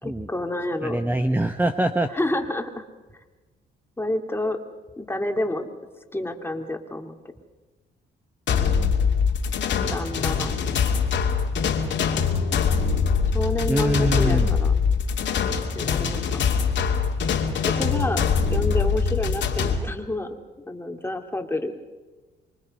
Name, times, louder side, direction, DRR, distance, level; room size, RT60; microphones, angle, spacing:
voice 1, 0.0-1.0 2.1-2.8 4.0-4.6 5.0-5.7 6.1-7.2 9.8-10.6 13.3-14.7 15.7-16.5 17.6-18.2 18.5-20.4 20.7-21.7, left 1 dB, 10° left, 4 dB, 2.5 m, -29 dB
voice 2, 0.8-2.1 8.5-9.2 9.8-9.9 13.7-14.5, right 1 dB, 10° right, 8 dB, 1.0 m, -25 dB
sound 1, 8.5-19.8, left 6 dB, 65° left, 2.5 m, -23 dB
26.5 x 23.5 x 5.4 m, 1.2 s
cardioid pair, 90°, 20 cm